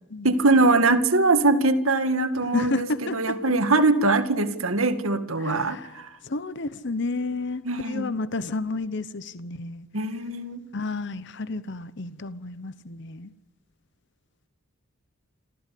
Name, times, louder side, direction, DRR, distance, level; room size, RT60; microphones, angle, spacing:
voice 1, 0.2-6.1 7.7-8.1 9.9-10.6, right 3 dB, 85° right, 9 dB, 2.1 m, -22 dB
voice 2, 2.5-3.4 5.4-9.9 10.7-13.3, left 3 dB, 55° left, 14 dB, 0.9 m, -31 dB
27.5 x 15.0 x 8.5 m, 0.99 s
head